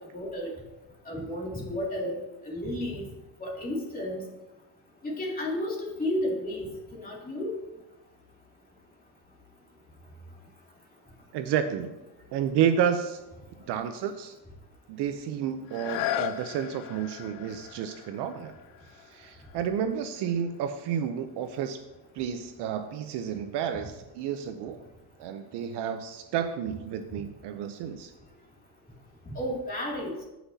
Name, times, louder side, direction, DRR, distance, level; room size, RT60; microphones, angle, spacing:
voice 1, 0.1-0.5 1.1-3.1 3.4-4.2 5.0-7.5 29.4-30.1, left 1 dB, 15° left, -3 dB, 2.5 m, -32 dB
voice 2, 11.3-12.0 12.3-13.2 13.7-14.4 14.9-18.5 18.9-21.8 22.1-24.9 25.2-28.1, right 8 dB, 55° right, 9 dB, 0.7 m, -31 dB
sound 1, 15.6-21.3 21.9-22.0, left 11 dB, 60° left, 0.7 m, -37 dB
16.0 x 6.0 x 2.8 m, 1.0 s
cardioid pair, 135°, 49 cm